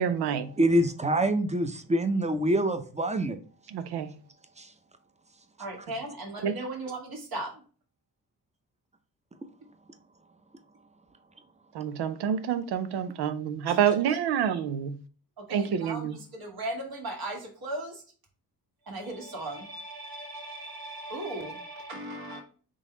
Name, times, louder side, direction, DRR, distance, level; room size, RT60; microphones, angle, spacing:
voice 1, 0.0-0.5 3.7-4.1 6.4-6.5 11.7-15.0 15.5-16.2, right 8 dB, 85° right, 0.6 m, -27 dB
voice 2, 0.6-3.4 4.6-4.7, right 1 dB, 15° right, 0.7 m, -25 dB
voice 3, 5.6-7.6 13.6-14.6 15.4-18.0 18.8-22.4, right 2 dB, 65° right, 1.6 m, -38 dB
3.8 x 3.1 x 3.9 m
cardioid pair, 60°, 39 cm